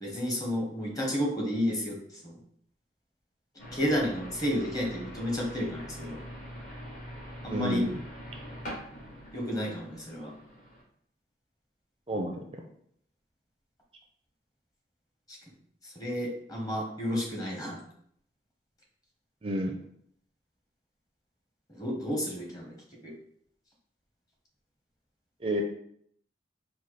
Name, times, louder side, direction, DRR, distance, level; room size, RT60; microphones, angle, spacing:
voice 1, 0.0-2.0 2.2-2.4 3.7-6.2 7.4-7.8 9.3-10.3 15.3-15.4 15.8-17.8 21.7-22.7 23.0-23.1, equal, 20° left, -1 dB, 1.0 m, -31 dB
sound 1, 3.6-10.8, equal, 45° left, 1.4 m, -43 dB
voice 2, 7.5-7.9 12.1-12.4 19.4-19.7 25.4-25.6, equal, 30° right, 2 dB, 0.4 m, -30 dB
4.2 x 2.2 x 4.6 m, 0.66 s
head